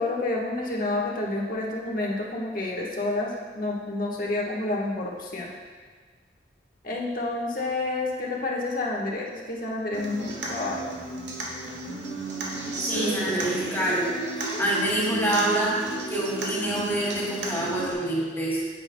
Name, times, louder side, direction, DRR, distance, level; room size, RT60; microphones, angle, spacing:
voice 1, 0.0-5.5 6.8-10.9, left 2 dB, 50° left, -2 dB, 1.3 m, -29 dB
Human voice / Acoustic guitar, 9.9-17.9, right 2 dB, 75° right, 1.5 m, -33 dB
voice 2, 12.9-15.7 16.1-18.6, right 1 dB, 15° left, -6 dB, 2.2 m, -26 dB
10.0 x 8.6 x 2.2 m, 1.5 s
head